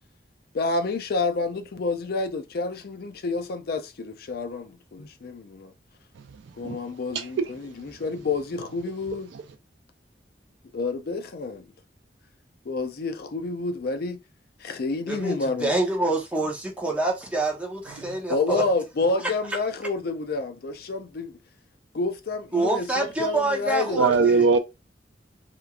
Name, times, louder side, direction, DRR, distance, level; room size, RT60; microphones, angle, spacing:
voice 1, 0.5-5.7 6.6-9.3 10.7-11.7 12.7-14.2 14.6-15.7 18.3-21.3 21.9-24.3, left 3 dB, 60° left, 0.4 m, -29 dB
voice 2, 6.1-8.0 9.3-9.4 17.9-18.2 24.0-24.6, right 4 dB, 85° right, 0.4 m, -24 dB
voice 3, 15.6-18.6 22.5-24.4, right 2 dB, 10° right, 0.7 m, -26 dB
2.9 x 2.5 x 2.3 m
head